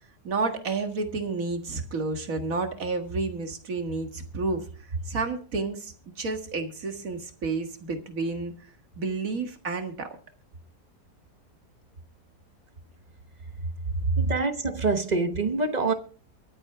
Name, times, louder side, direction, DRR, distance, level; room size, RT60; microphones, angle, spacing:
voice 1, 0.2-10.2, right 3 dB, 55° right, 2.1 m, -31 dB
voice 2, 14.2-15.9, right 3 dB, 30° right, 1.0 m, -26 dB
23.5 x 8.2 x 3.5 m
omnidirectional pair, 1.7 m